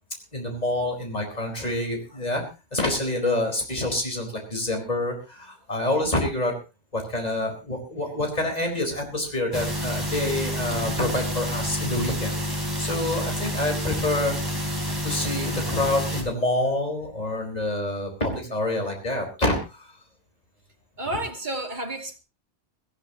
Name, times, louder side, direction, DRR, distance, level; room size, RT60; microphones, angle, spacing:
voice 1, 0.3-2.4 2.7-6.5 6.9-12.4 12.8-14.3 15.0-19.9, left 1 dB, 35° left, 4.6 m, -27 dB
sound 1, 9.5-16.2, equal, 20° right, 4.0 m, -29 dB
voice 2, 21.0-22.2, right 1 dB, 40° right, 2.8 m, -31 dB
22.5 x 14.5 x 3.0 m
omnidirectional pair, 1.2 m